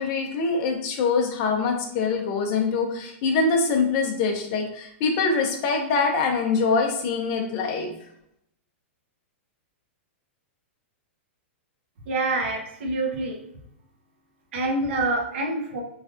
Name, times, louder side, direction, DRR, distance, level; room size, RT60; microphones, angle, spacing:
voice 1, 0.0-7.9, left 4 dB, 40° left, 3 dB, 0.6 m, -24 dB
voice 2, 12.1-13.4 14.5-15.8, right 2 dB, 60° right, 1 dB, 0.8 m, -26 dB
3.2 x 2.4 x 2.5 m, 0.76 s
hypercardioid pair, 150°, 7 cm